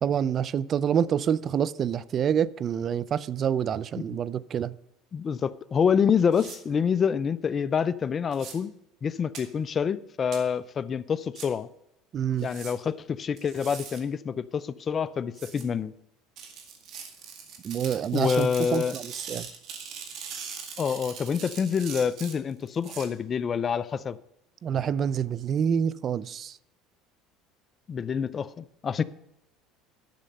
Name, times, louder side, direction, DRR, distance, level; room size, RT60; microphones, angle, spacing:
voice 1, 0.0-4.7 12.1-12.5 17.6-19.5 24.6-26.6, right 8 dB, 40° right, 0.4 m, -27 dB
voice 2, 5.1-8.7 9.0-11.7 12.4-15.9 18.1-19.0 20.8-24.2 27.9-29.0, left 7 dB, 35° left, 0.5 m, -27 dB
sound 1, 6.3-6.6 8.3-8.5 9.3-9.4 10.3-10.4 11.3-11.5 12.4-12.7 13.4-14.0 15.3-15.6 16.4-23.1, right 6 dB, 55° right, 2.1 m, -41 dB
10.5 x 6.8 x 5.3 m
supercardioid pair, 105°, 0 cm